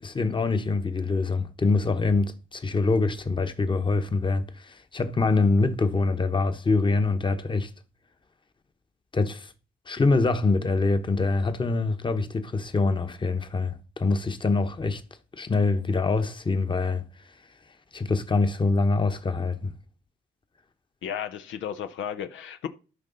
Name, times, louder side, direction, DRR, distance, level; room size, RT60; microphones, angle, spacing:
voice 1, 0.0-7.7 9.1-9.5 9.9-15.0 15.4-17.0 17.9-19.7, left 3 dB, 25° left, 1.1 m, -24 dB
voice 2, 21.0-22.7, left 8 dB, 75° left, 0.8 m, -33 dB
13.0 x 5.3 x 4.0 m
cardioid pair, 90°, 20 cm